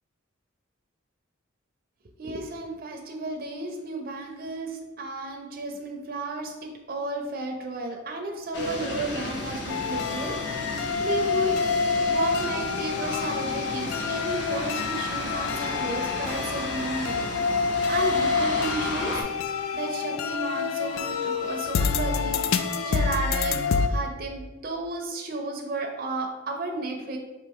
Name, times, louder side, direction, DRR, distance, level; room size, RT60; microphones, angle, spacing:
voice 1, 2.2-11.5 12.1-17.3 17.6-19.2 19.7-23.6 23.9-27.2, right 2 dB, 45° right, 2 dB, 0.4 m, -33 dB
sound 1, 8.5-19.2, left 1 dB, 55° left, 0.7 m, -34 dB
sound 2, 9.7-23.9, left 5 dB, 75° left, 0.3 m, -27 dB
4.5 x 2.8 x 3.5 m, 1.1 s
head